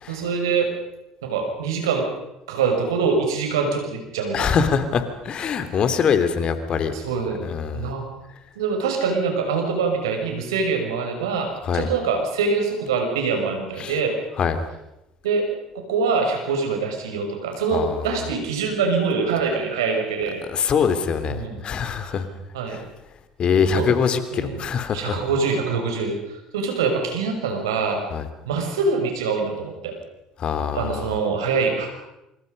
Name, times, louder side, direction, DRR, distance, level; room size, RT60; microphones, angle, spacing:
voice 1, 0.1-0.7 1.2-2.1 2.5-4.6 6.9-8.0 8.5-14.1 15.2-15.5 15.7-20.4 21.2-21.6 22.5-22.8 23.7-23.9 24.3-24.6 24.9-28.0 28.4-30.0 30.6-31.9, right 5 dB, 80° right, 3 dB, 6.4 m, -24 dB
voice 2, 4.3-6.9 7.4-7.9 11.7-11.9 13.8-13.9 14.4-14.6 17.7-18.0 20.5-22.2 22.7-22.8 23.4-25.2 28.1-28.2 30.4-31.1, left 6 dB, 45° left, 9 dB, 3.1 m, -23 dB
27.0 x 26.0 x 5.4 m, 0.91 s
hypercardioid pair, 65°, 2 cm